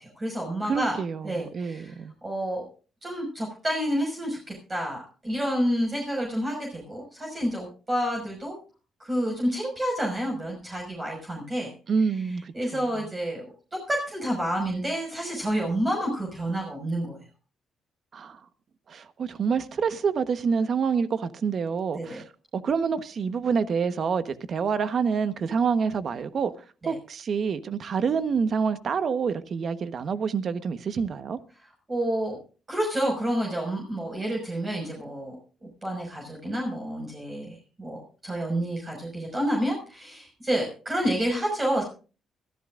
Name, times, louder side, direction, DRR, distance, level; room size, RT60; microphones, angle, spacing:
voice 1, 0.0-1.0 1.2-2.0 2.2-2.6 3.0-8.6 9.0-11.7 12.5-13.5 13.9-17.2 21.9-22.2 26.8-26.9 31.9-32.4 32.7-35.4 35.8-41.8, equal, 25° right, 5.7 m, -29 dB
voice 2, 0.7-2.1 11.9-13.1 18.1-18.4 18.9-22.2 22.5-26.5 26.9-31.4, right 6 dB, 55° right, 1.2 m, -27 dB
24.0 x 14.0 x 2.5 m
cardioid pair, 90°, 0 cm